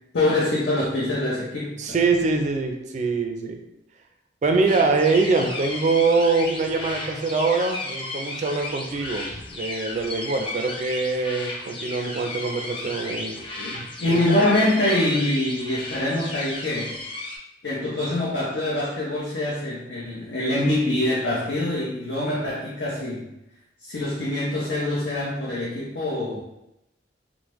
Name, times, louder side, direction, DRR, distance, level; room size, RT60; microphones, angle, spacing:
voice 1, 0.1-2.0 13.6-17.0 17.6-23.3 23.8-26.4, left 1 dB, 70° left, -7 dB, 0.7 m, -24 dB
voice 2, 1.8-3.6 4.4-9.2 9.5-13.4 13.7-14.2, right 3 dB, 40° right, 4 dB, 0.3 m, -23 dB
sound 1, 4.7-17.4, left 2 dB, 30° left, 0.5 m, -34 dB
3.3 x 2.0 x 3.0 m, 0.86 s
head